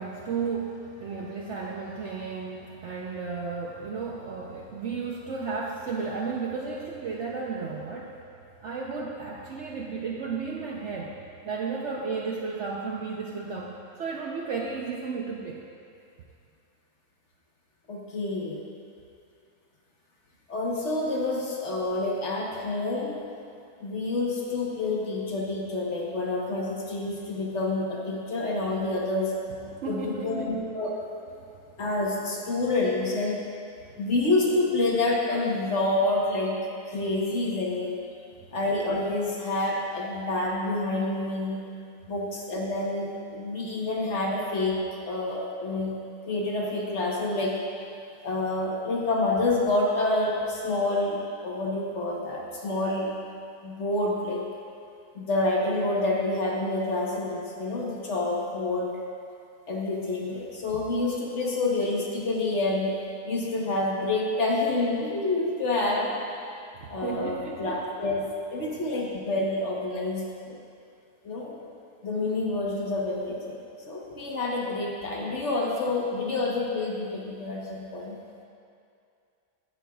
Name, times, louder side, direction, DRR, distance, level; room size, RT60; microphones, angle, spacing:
voice 1, 0.0-8.1 8.6-11.1 11.4-15.6 29.7-30.7 66.8-67.8 68.8-68.9, right 4 dB, 65° right, -2 dB, 0.8 m, -33 dB
voice 2, 17.9-18.6 20.5-23.2 23.8-29.3 29.6-30.9 31.8-33.4 34.0-36.5 36.9-38.0 38.5-41.6 42.1-44.8 45.1-45.9 46.3-47.6 48.2-53.1 53.6-54.4 55.1-58.9 59.7-62.9 63.3-66.1 66.9-68.2 68.5-70.6 71.2-71.5 72.0-78.2, left 2 dB, 50° left, -3 dB, 1.2 m, -28 dB
16.5 x 6.4 x 2.3 m, 2.5 s
omnidirectional pair, 1.7 m